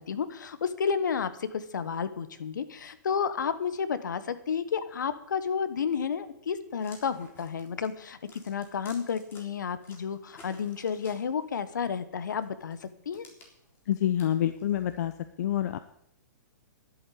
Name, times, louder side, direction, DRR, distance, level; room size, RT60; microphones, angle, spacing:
voice 1, 0.0-13.3, left 6 dB, 75° left, 13 dB, 1.3 m, -31 dB
sound 1, 6.8-9.4 9.8-11.6 12.4-15.0, left 3 dB, 20° left, 3.7 m, -54 dB
voice 2, 13.9-15.1 15.4-15.8, left 11 dB, 60° left, 12 dB, 0.8 m, -27 dB
11.0 x 8.4 x 9.4 m, 0.78 s
hypercardioid pair, 125°, 10 cm